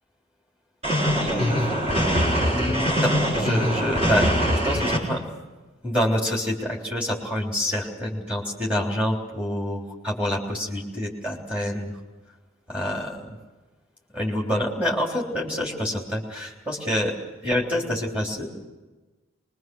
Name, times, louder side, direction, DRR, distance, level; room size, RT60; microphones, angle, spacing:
sound 1, 0.8-5.0, equal, 30° right, 4.5 m, -22 dB
voice 1, 1.2-1.6 2.5-4.3 4.6-5.2 5.8-11.9 12.7-13.4 14.1-17.1 17.4-18.7, left 1 dB, 5° right, -2 dB, 3.5 m, -27 dB
24.5 x 22.0 x 6.3 m, 1.2 s
head